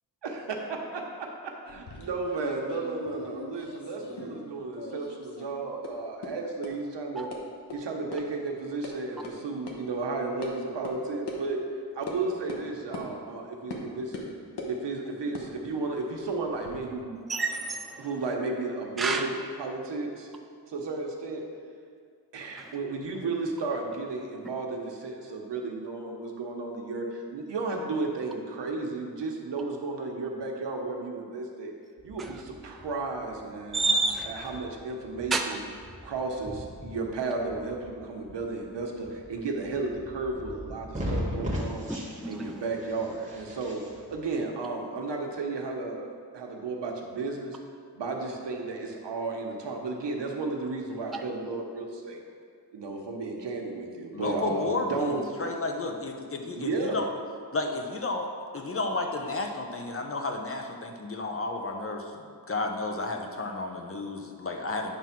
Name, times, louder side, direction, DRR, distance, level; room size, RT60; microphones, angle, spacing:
voice 1, 0.2-7.3 7.7-11.6 11.9-14.2 14.7-17.2 18.0-20.3 20.7-21.4 22.3-31.7 32.0-33.8 34.3-35.6 36.0-41.9 42.3-43.8 44.1-46.1 46.3-47.6 47.9-52.2 52.7-55.2 56.5-57.0, right 3 dB, 90° right, 1 dB, 1.1 m, -33 dB
sound 1, 1.7-4.5 4.7-5.5 5.8-5.9 6.2-6.3 6.6-6.7 7.3-7.4 7.7-7.8 8.1-8.2 8.5-8.9 9.2-9.3 9.7-9.8 10.4-10.5 10.8-10.9 11.3-11.4 12.1-12.2 12.5-12.6 12.9-13.1 13.7-13.8 14.1-14.7 15.2-16.8, left 2 dB, 75° left, 1.2 m, -40 dB
voice 2, 17.3-18.1 19.0-19.3 22.6-22.7 32.2-32.4 33.7-34.6 35.3-35.6 41.9-42.0 42.2-42.6 51.1-51.2, right 3 dB, ahead, 3 dB, 0.4 m, -29 dB
sound 2, 32.0-44.2, equal, 20° right, 1.5 m, -40 dB
voice 3, 54.1-57.1 57.5-65.0, left 3 dB, 35° left, 3 dB, 0.7 m, -32 dB
9.3 x 3.5 x 5.9 m, 2.1 s
wide cardioid pair, 135°, 41 cm